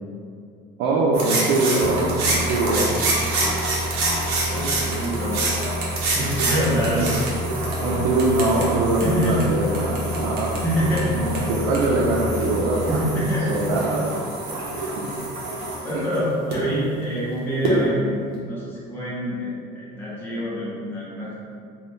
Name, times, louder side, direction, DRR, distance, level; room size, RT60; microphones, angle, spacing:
voice 1, 0.8-3.0 6.7-7.1 7.8-10.6 11.1-13.0 13.5-14.1 15.0-15.1 15.9-16.1, right 2 dB, 90° right, -4 dB, 0.5 m, -23 dB
sound 1, 1.1-16.6 17.6-17.8, right 2 dB, 60° right, 0.9 m, -27 dB
sound 2, 1.8-13.5, equal, 20° right, 0.4 m, -31 dB
voice 2, 4.5-5.4 6.0-7.2 9.0-9.5 10.6-11.5 12.9-13.9 14.7-14.9 15.8-18.1 18.5-21.4, equal, 10° left, -8 dB, 0.7 m, -26 dB
3.6 x 2.3 x 3.8 m, 2.3 s
cardioid pair, 170°, 17 cm